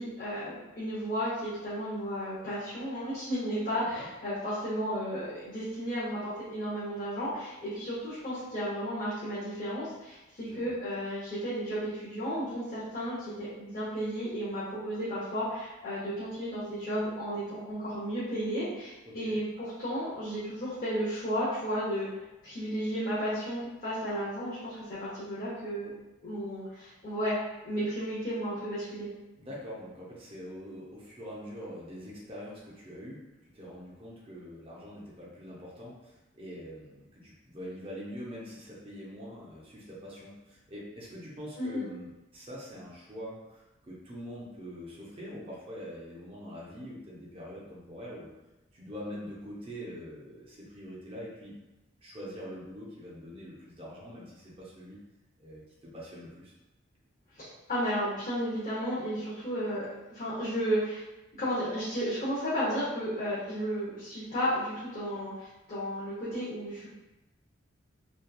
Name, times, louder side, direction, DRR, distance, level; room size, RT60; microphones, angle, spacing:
voice 1, 0.0-22.1 22.4-25.9 26.2-27.3 27.6-29.1 41.6-41.8 57.3-61.0 61.3-66.9, equal, 40° left, -12 dB, 0.7 m, -33 dB
voice 2, 19.1-19.4 29.4-33.2 33.5-48.3 48.7-51.6 52.0-55.0 55.4-56.5, equal, 30° right, -6 dB, 0.5 m, -44 dB
2.8 x 2.2 x 2.2 m, 1.0 s
head